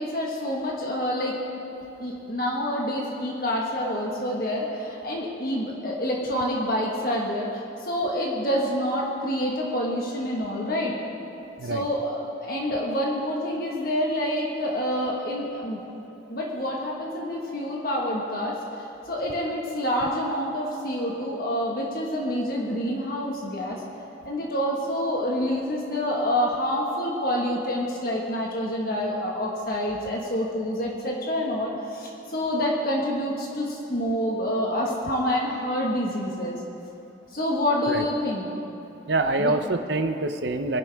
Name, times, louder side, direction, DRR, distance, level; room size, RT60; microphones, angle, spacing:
voice 1, 0.0-1.4 2.0-10.9 11.6-15.8 16.3-23.8 24.2-36.6 37.3-38.5 39.4-39.5, equal, 50° left, -2 dB, 1.6 m, -27 dB
voice 2, 39.1-40.8, right 2 dB, 65° right, 8 dB, 0.7 m, -25 dB
21.5 x 11.5 x 3.5 m, 2.9 s
head